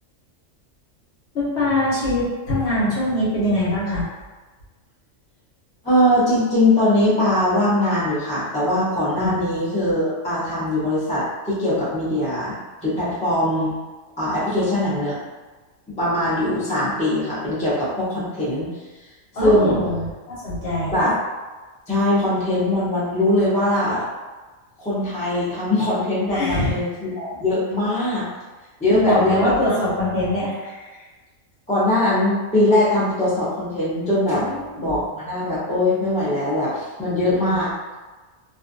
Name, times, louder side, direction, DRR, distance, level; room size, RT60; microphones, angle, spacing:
voice 1, 1.3-4.1 9.1-9.3 19.4-21.0 26.3-26.8 28.9-30.8 34.3-35.0 37.1-37.2 37.5-37.6, left 1 dB, 60° left, -8 dB, 1.0 m, -23 dB
voice 2, 5.8-13.8 14.2-15.2 15.9-18.7 19.4-19.8 20.9-21.1 21.9-24.0 24.8-28.2 28.8-29.5 31.7-34.5 34.8-37.9, left 1 dB, 5° left, -10 dB, 0.6 m, -21 dB
2.5 x 2.2 x 2.5 m, 1.3 s
omnidirectional pair, 1.3 m